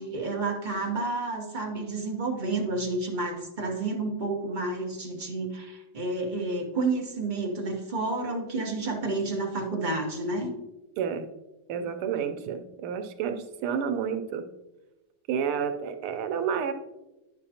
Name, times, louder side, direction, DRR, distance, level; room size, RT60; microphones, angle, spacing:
voice 1, 0.0-10.5, right 3 dB, 35° right, 0 dB, 0.7 m, -30 dB
voice 2, 11.7-14.4 15.3-16.7, right 7 dB, 90° right, 7 dB, 1.6 m, -30 dB
9.8 x 6.7 x 2.8 m, 1.0 s
omnidirectional pair, 2.3 m